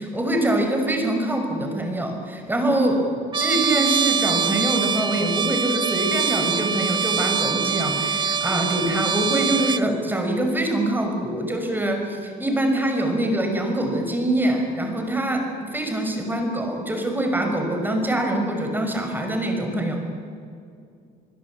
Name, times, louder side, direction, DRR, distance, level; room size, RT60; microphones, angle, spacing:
voice 1, 0.0-20.0, right 1 dB, 10° right, 3 dB, 5.9 m, -24 dB
Trumpet, 3.3-9.9, right 6 dB, 25° right, 0.7 m, -24 dB
25.0 x 23.0 x 8.7 m, 2.4 s
cardioid pair, 110°, 17 cm